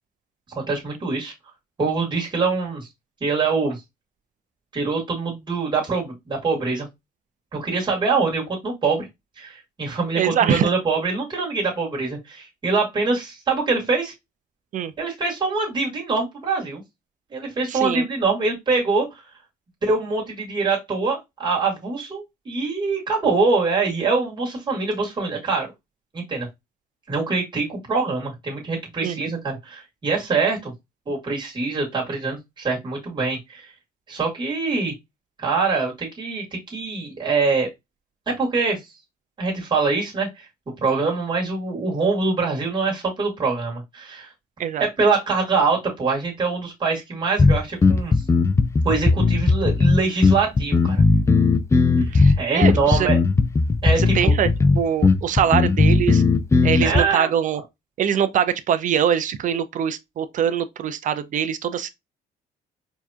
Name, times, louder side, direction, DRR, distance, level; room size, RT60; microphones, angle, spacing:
voice 1, 0.5-1.3 1.8-2.9 3.2-3.8 4.7-6.9 7.5-9.1 9.4-14.1 15.0-16.8 17.3-19.1 19.8-25.7 26.1-26.5 27.1-30.7 31.1-33.7 34.1-34.9 35.4-37.7 38.3-38.8 39.4-40.5 40.8-44.3 44.8-48.2 48.8-51.0 52.1-53.2 53.8-54.3 56.8-57.3, right 4 dB, 25° right, 2.1 m, -24 dB
voice 2, 10.1-10.7 14.7-14.9 17.7-18.1 29.0-29.3 44.6-44.9 52.1-53.1 54.0-54.5 54.7-56.2 56.6-57.6 58.0-61.9, right 9 dB, 50° right, 0.6 m, -23 dB
sound 1, 47.4-57.0, left 4 dB, 15° left, 0.4 m, -17 dB
4.6 x 2.9 x 2.3 m
cardioid pair, 110°, 17 cm